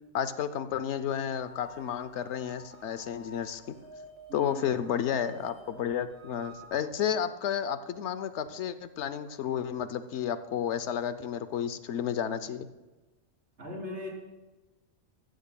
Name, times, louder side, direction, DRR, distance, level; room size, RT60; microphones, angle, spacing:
voice 1, 0.1-3.7 4.3-12.7, left 9 dB, 75° left, 12 dB, 0.9 m, -32 dB
sound 1, 1.3-6.7, right 1 dB, 30° right, 2.9 m, -51 dB
voice 2, 4.3-4.8 13.6-14.1, left 1 dB, 70° right, -3 dB, 3.8 m, -39 dB
14.5 x 14.0 x 2.2 m, 1.1 s
omnidirectional pair, 1.2 m